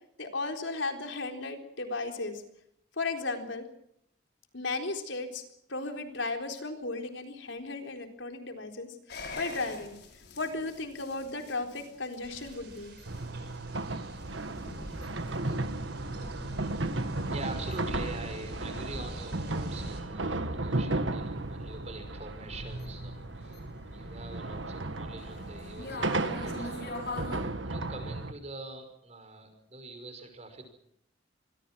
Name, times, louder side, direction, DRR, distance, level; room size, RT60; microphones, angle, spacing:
voice 1, 0.2-2.4 3.0-3.7 4.5-5.4 5.7-10.0 10.4-12.9, left 3 dB, 80° left, 5 dB, 4.0 m, -35 dB
sound 1, 9.1-27.4, left 1 dB, 60° left, 6.5 m, -44 dB
sound 2, 12.2-20.0, right 3 dB, 60° right, 5.6 m, -50 dB
sound 3, 13.1-28.3, right 2 dB, 85° right, 1.6 m, -35 dB
voice 2, 17.3-23.6 23.9-27.1 27.6-30.6, right 2 dB, 35° right, 7 dB, 5.5 m, -44 dB
27.0 x 22.0 x 6.2 m, 0.74 s
head